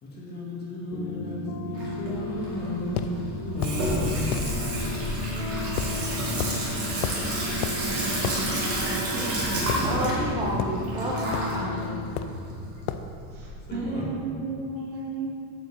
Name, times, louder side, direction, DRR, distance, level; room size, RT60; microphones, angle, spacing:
voice 1, 0.0-4.5 6.2-6.3 13.7-14.1, left 1 dB, 25° left, -5 dB, 1.9 m, -34 dB
sound 1, 0.9-12.1, left 2 dB, 85° left, 1.5 m, -34 dB
Water tap faucet / Sink (filling or washing), 1.7-13.5, right 1 dB, 35° right, 2.4 m, -30 dB
sound 2, 3.0-3.1 3.6-3.8 4.3-4.5 5.8-6.0 6.4-6.6 7.0-7.3 7.6-7.8 8.2-8.4 9.7-10.2 10.6-10.8 11.3-11.6 12.2-12.4 12.9-13.1, left 10 dB, 50° left, 0.6 m, -31 dB
voice 2, 9.1-12.0, right 1 dB, 10° right, -4 dB, 0.6 m, -31 dB
voice 3, 13.3-15.3, right 3 dB, 50° right, -4 dB, 2.5 m, -33 dB
8.3 x 5.7 x 7.5 m, 2.4 s
cardioid pair, 175°, 42 cm